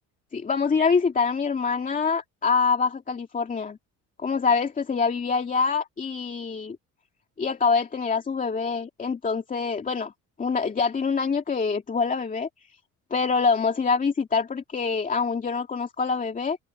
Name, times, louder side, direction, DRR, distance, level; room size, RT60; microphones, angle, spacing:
voice 1, 0.3-3.8 4.2-6.8 7.4-10.1 10.4-12.5 13.1-16.6, left 5 dB, 25° left, 2.4 m, -25 dB
cardioid pair, 130°, 33 cm